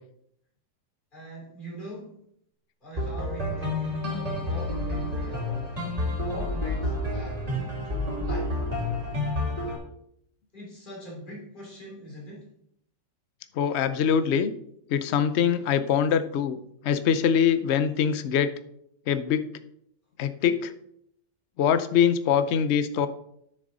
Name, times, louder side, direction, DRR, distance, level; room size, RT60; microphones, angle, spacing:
voice 1, 1.1-2.2 2.8-5.8 6.2-8.6 10.5-12.5 15.6-15.8, right 1 dB, 30° left, -4 dB, 3.4 m, -42 dB
sound 1, 3.0-9.8, left 1 dB, 20° right, 2.8 m, -29 dB
voice 2, 13.6-14.5 14.9-16.6 16.8-18.5 19.1-19.4 20.2-20.7 21.6-23.1, left 8 dB, 60° left, 12 dB, 0.7 m, -23 dB
10.0 x 6.7 x 4.0 m, 0.72 s
omnidirectional pair, 1.8 m